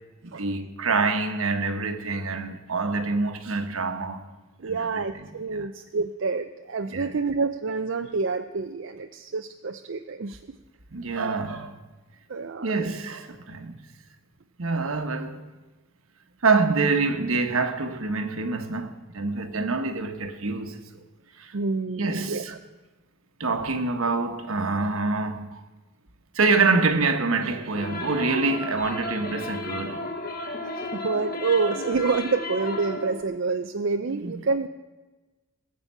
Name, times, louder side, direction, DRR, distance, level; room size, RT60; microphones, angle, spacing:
voice 1, 0.2-4.2 4.6-4.8 5.5-5.7 6.9-7.1 10.9-11.8 12.6-13.8 14.6-15.4 16.4-21.0 21.4-21.5 22.0-22.5 23.4-25.6 26.3-30.1 34.1-34.4, right 3 dB, 80° right, 1.2 m, -26 dB
voice 2, 4.6-10.4 12.3-12.7 21.5-22.6 30.9-34.7, right 4 dB, 60° right, 0.5 m, -28 dB
sound 1, 27.8-33.2, left 2 dB, 45° left, 1.3 m, -33 dB
20.0 x 7.5 x 5.6 m
head